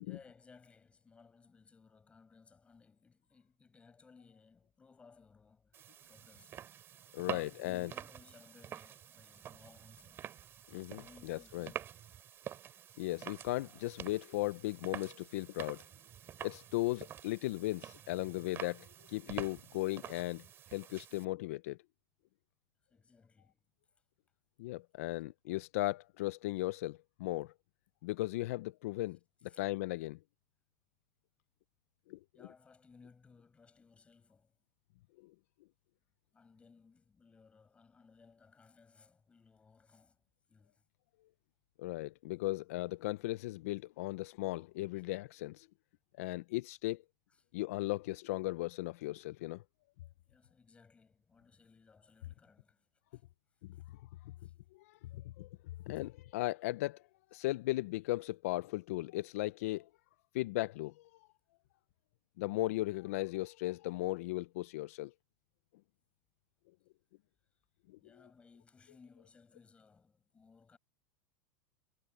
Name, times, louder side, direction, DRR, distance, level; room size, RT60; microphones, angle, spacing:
voice 1, 0.0-5.8 6.1-6.6 7.2-10.4 10.9-11.9 22.9-23.7 25.1-25.2 29.4-29.6 32.3-34.6 36.3-40.2 40.5-40.9 47.3-47.5 50.3-53.2 53.7-53.8 54.4-54.5 55.9-56.1 68.0-70.8, left 5 dB, 15° left, 6.6 m, -62 dB
sound 1, 5.7-21.3, right 10 dB, 30° right, 3.0 m, -48 dB
voice 2, 7.1-7.9 10.7-11.0 11.3-11.7 13.0-15.8 16.4-20.4 20.7-21.8 24.6-27.5 28.0-29.2 29.6-30.2 32.1-32.2 41.8-45.7 46.2-47.0 47.5-49.6 54.9-55.5 55.9-57.0 57.3-59.9 60.3-60.9 62.4-65.1, left 18 dB, 65° left, 0.5 m, -36 dB
supercardioid pair, 145°, 8 cm